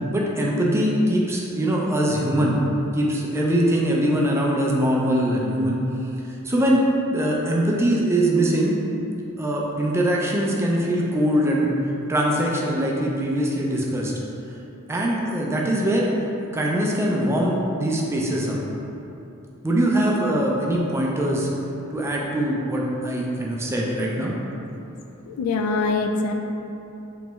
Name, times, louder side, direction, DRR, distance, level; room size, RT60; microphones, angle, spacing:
voice 1, 0.1-2.6 2.9-5.8 6.3-8.8 9.4-11.7 12.1-14.1 14.9-16.1 16.5-18.6 19.6-21.5 21.9-24.3, right 1 dB, 10° right, -3 dB, 0.4 m, -22 dB
voice 2, 25.3-26.3, left 3 dB, 70° left, 4 dB, 0.3 m, -23 dB
3.1 x 2.9 x 3.4 m, 2.8 s
head